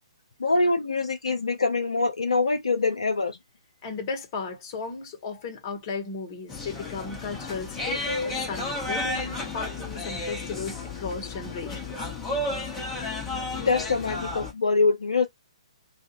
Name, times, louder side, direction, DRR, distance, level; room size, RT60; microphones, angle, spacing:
voice 1, 0.4-3.4 13.6-15.3, left 3 dB, 70° left, 0.6 m, -24 dB
voice 2, 3.8-12.1, left 4 dB, 35° left, 1.1 m, -35 dB
sound 1, 6.5-14.5, left 2 dB, 10° left, 1.0 m, -32 dB
2.4 x 2.4 x 2.9 m
figure-of-eight pair, 125°, 3 cm